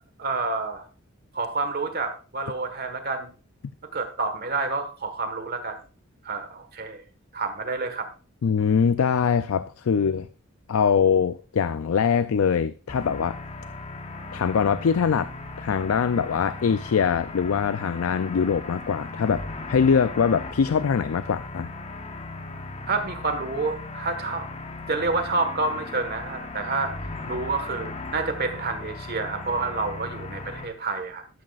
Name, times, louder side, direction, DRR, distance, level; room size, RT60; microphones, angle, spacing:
voice 1, 0.2-0.8 1.3-3.3 3.9-5.8 6.2-7.0 7.3-8.1 22.9-24.5 24.9-26.9 27.3-31.2, right 3 dB, 45° right, 7 dB, 1.5 m, -28 dB
voice 2, 8.4-10.3 10.7-13.4 14.3-15.3 15.6-19.4 19.7-21.7, left 6 dB, 80° left, 14 dB, 0.4 m, -23 dB
sound 1, 12.9-30.7, left 3 dB, 30° left, 0.9 m, -37 dB
12.5 x 12.5 x 2.4 m, 0.36 s
head